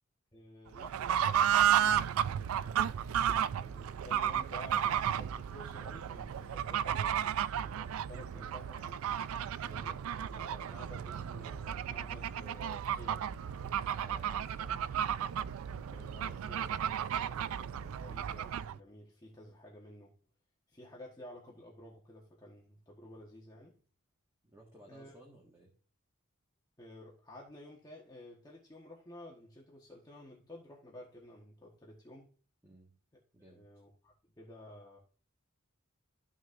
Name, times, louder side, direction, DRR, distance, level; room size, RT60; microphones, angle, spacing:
voice 1, 0.3-2.1 3.3-9.0 9.6-13.3 15.9-20.1 20.7-23.8 24.9-25.1 26.8-32.3 33.5-35.0, left 1 dB, 20° left, 1.2 m, -52 dB
Fowl / Bird, 0.7-18.8, right 9 dB, 80° right, 0.3 m, -33 dB
sound 1, 1.5-18.7, left 1 dB, 70° left, 1.3 m, -60 dB
voice 2, 13.9-14.8 24.4-25.7 32.6-32.9 33.3-33.6, right 1 dB, 15° right, 1.5 m, -58 dB
13.0 x 6.2 x 2.5 m
head